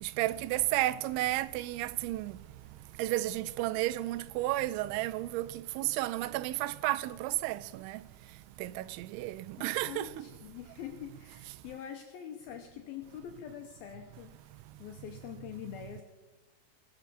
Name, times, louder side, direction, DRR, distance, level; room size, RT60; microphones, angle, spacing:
voice 1, 0.0-2.3 3.0-5.5 5.8-8.0 8.6-10.1, right 16 dB, 85° right, 2.9 m, -32 dB
voice 2, 9.6-14.3 14.8-16.0, left 9 dB, 80° left, 2.2 m, -44 dB
21.0 x 7.2 x 6.8 m
omnidirectional pair, 5.3 m